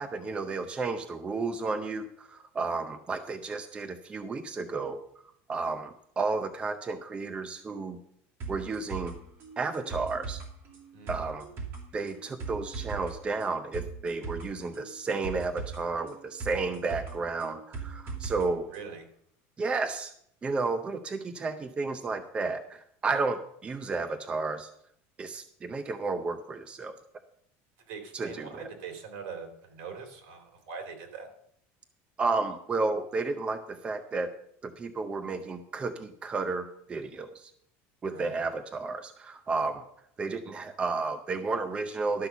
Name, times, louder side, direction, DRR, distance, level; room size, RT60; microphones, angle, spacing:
voice 1, 0.0-5.0 5.5-8.0 8.5-9.2 9.6-10.4 11.1-11.5 11.9-18.7 19.6-20.1 20.4-24.7 25.2-27.0 28.1-28.7 32.2-34.3 34.6-37.5 38.0-39.8 40.2-42.3, right 3 dB, 20° right, 8 dB, 0.6 m, -32 dB
sound 1, 8.4-18.4 18.7-18.8, right 5 dB, 40° right, 2.5 m, -39 dB
voice 2, 18.7-19.0 27.8-31.3 38.0-38.4, right 5 dB, 70° right, 5 dB, 3.2 m, -42 dB
12.0 x 5.8 x 6.9 m, 0.69 s
cardioid pair, 155°, 6 cm